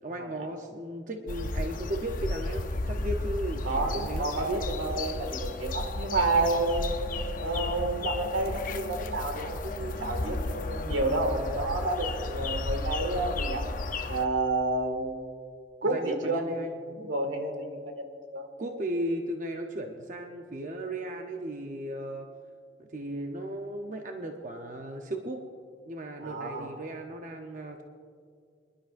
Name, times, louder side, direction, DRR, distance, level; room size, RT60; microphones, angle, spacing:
voice 1, 0.0-4.5 15.8-16.8 18.6-22.3 22.8-25.4 25.9-27.8, right 1 dB, 40° right, 3 dB, 0.7 m, -36 dB
sound 1, 1.3-14.3, left 2 dB, 45° left, 0.7 m, -33 dB
voice 2, 3.6-7.1 7.4-13.6 14.1-15.3 15.8-16.4 17.0-18.0 18.3-18.5 26.2-26.7, right 2 dB, 85° right, 3 dB, 1.9 m, -30 dB
25.0 x 11.5 x 2.5 m, 2.2 s
head